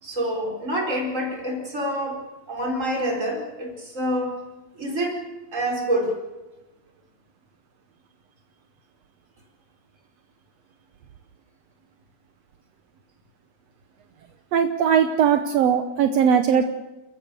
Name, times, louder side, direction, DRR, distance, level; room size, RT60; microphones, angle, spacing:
voice 1, 0.0-4.4 4.7-5.2 5.5-6.2, equal, 20° right, 2 dB, 4.6 m, -27 dB
voice 2, 14.5-16.7, right 7 dB, 70° right, 7 dB, 1.6 m, -19 dB
30.0 x 15.0 x 6.9 m, 1.1 s
omnidirectional pair, 4.0 m